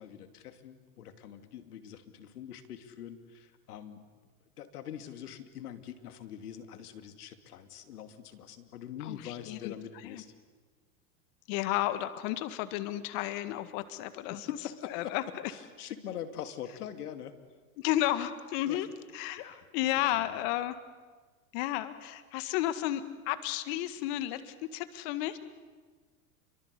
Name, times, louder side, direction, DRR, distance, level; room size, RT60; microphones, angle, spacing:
voice 1, 0.0-4.1 4.6-10.3 14.3-15.2 15.5-17.4 18.7-18.9 19.4-19.6 20.0-20.5, left 9 dB, 80° left, 8 dB, 2.8 m, -44 dB
voice 2, 9.0-10.2 11.5-14.6 14.9-15.5 17.8-18.9 19.1-19.4 19.7-20.7 21.5-25.4, left 14 dB, 60° left, 11 dB, 1.8 m, -33 dB
29.5 x 24.0 x 8.4 m, 1.4 s
hypercardioid pair, 100°, 45 cm